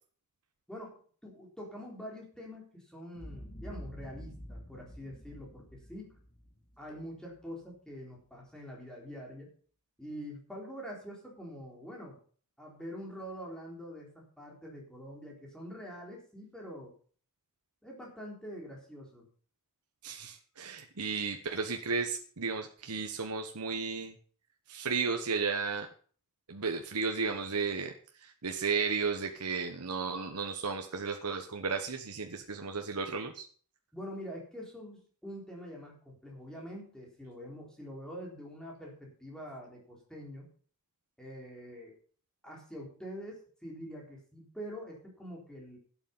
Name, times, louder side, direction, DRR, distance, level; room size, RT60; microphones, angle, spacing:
voice 1, 0.7-6.2 6.8-9.5 10.0-12.2 12.6-16.9 17.8-19.3 33.9-40.5 41.2-42.0 42.4-45.8, equal, 5° left, -2 dB, 3.9 m, -45 dB
Boom, 3.1-7.4, equal, 40° left, 2.5 m, -48 dB
voice 2, 20.0-24.1 24.7-25.9 26.5-27.9 28.2-33.5, right 5 dB, 80° right, 4 dB, 1.2 m, -34 dB
12.0 x 8.4 x 5.5 m, 0.44 s
head